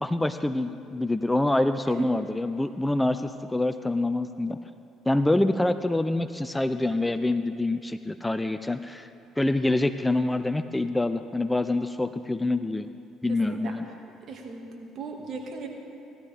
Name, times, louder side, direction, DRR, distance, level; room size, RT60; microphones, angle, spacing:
voice 1, 0.0-4.6 5.1-9.1 9.4-12.9 13.2-13.9, left 2 dB, 10° left, 10 dB, 0.5 m, -26 dB
voice 2, 1.9-2.2 13.3-13.9 14.2-15.7, right 4 dB, 55° right, 1 dB, 2.0 m, -37 dB
18.0 x 12.5 x 3.5 m, 2.6 s
supercardioid pair, 70°, 0 cm